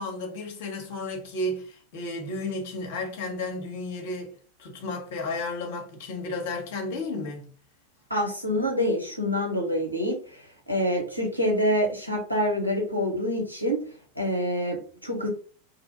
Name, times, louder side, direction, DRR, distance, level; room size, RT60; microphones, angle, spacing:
voice 1, 0.0-4.3 4.6-7.5, left 2 dB, 50° left, 0.9 m, -33 dB
voice 2, 8.1-13.8 14.2-15.3, equal, 90° right, 0.8 m, -26 dB
2.8 x 2.2 x 2.8 m
figure-of-eight pair, 90°, 0 cm